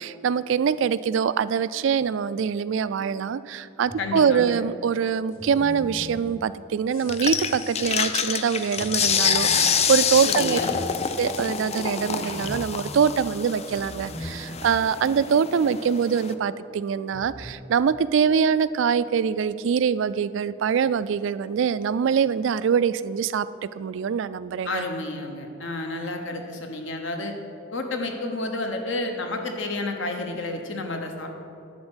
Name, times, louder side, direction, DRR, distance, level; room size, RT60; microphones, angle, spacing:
voice 1, 0.0-10.6 11.2-23.5 23.8-24.8, right 7 dB, 65° right, 16 dB, 0.3 m, -24 dB
sound 1, 3.8-4.6 5.3-8.1 8.8-15.0 15.3-15.4 17.1-17.5, equal, 10° left, 0.7 m, -41 dB
voice 2, 4.0-4.7 10.2-10.8 24.6-27.3 27.7-31.4, left 2 dB, 65° left, 4 dB, 1.1 m, -30 dB
sound 2, 5.3-6.3 6.9-8.1 8.4-11.6 12.2-12.6, left 4 dB, 90° left, 1.5 m, -46 dB
sound 3, 7.1-16.3, left 7 dB, 35° left, 0.4 m, -27 dB
11.0 x 4.3 x 8.0 m, 2.6 s
head